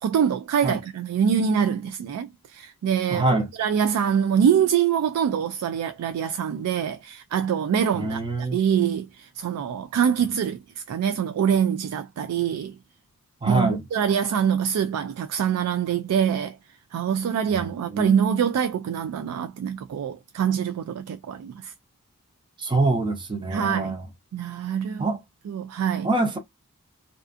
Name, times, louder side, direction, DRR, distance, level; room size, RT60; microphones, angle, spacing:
voice 1, 0.0-12.8 13.5-16.6 16.9-21.7 23.5-24.0 24.3-25.1 25.5-26.1, right 8 dB, 85° right, 0.3 m, -24 dB
voice 2, 3.1-3.5 7.9-8.6 13.4-13.8 17.5-18.2 22.6-24.0 25.0-25.2 26.0-26.4, right 2 dB, 20° right, 0.6 m, -25 dB
2.4 x 2.3 x 2.5 m
head